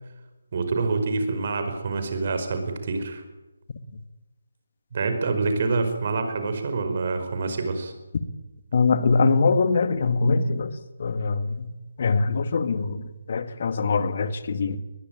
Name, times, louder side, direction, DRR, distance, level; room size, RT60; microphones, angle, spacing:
voice 1, 0.5-3.2 4.9-7.9, right 3 dB, 45° right, 8 dB, 5.1 m, -26 dB
voice 2, 8.7-10.7 11.0-11.7 12.0-14.8, left 4 dB, 45° left, 11 dB, 2.1 m, -23 dB
22.0 x 21.0 x 9.0 m, 1.1 s
figure-of-eight pair, 150°, 0 cm